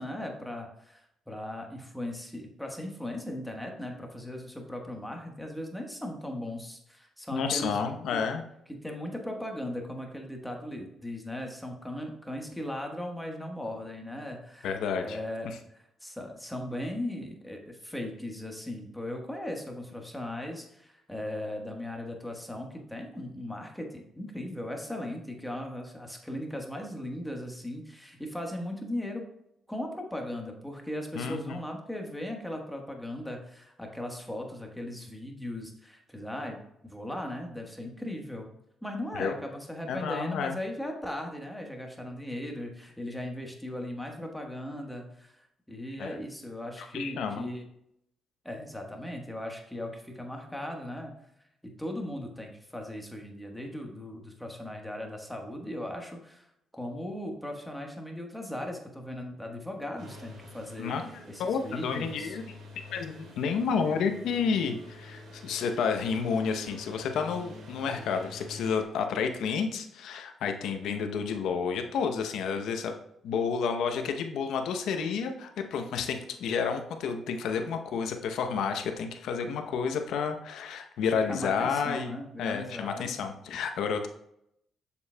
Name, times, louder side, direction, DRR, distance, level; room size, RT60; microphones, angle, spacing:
voice 1, 0.0-8.2 8.7-14.7 15.0-29.2 29.7-38.5 38.8-47.6 48.4-51.1 51.6-56.5 56.7-60.9 61.3-62.4 81.3-83.2, left 1 dB, 5° left, 1 dB, 1.3 m, -38 dB
voice 2, 7.3-8.4 14.6-15.2 15.4-15.6 31.1-31.6 39.1-39.3 39.9-40.6 46.0-46.1 46.8-47.5 60.8-61.0 61.4-62.4 62.9-72.9 73.2-84.1, left 6 dB, 80° left, 6 dB, 0.7 m, -30 dB
sound 1, 60.0-68.8, left 2 dB, 75° right, 2.4 m, -47 dB
6.9 x 6.9 x 2.2 m, 0.76 s
cardioid pair, 90°, 0 cm